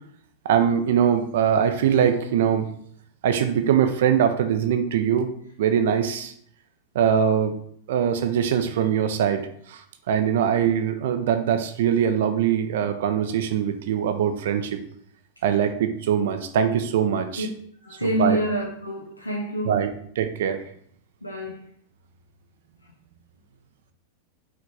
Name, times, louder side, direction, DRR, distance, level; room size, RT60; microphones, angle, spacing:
voice 1, 0.4-2.7 3.2-5.3 5.6-6.3 6.9-7.5 7.9-9.8 10.1-14.8 15.4-17.5 18.0-18.4 19.6-19.9 20.2-20.6, right 8 dB, 55° right, 0.5 m, -22 dB
voice 2, 17.8-19.8 21.2-21.7, right 1 dB, 85° left, 0.6 m, -27 dB
4.9 x 3.3 x 3.2 m
figure-of-eight pair, 90°, 0 cm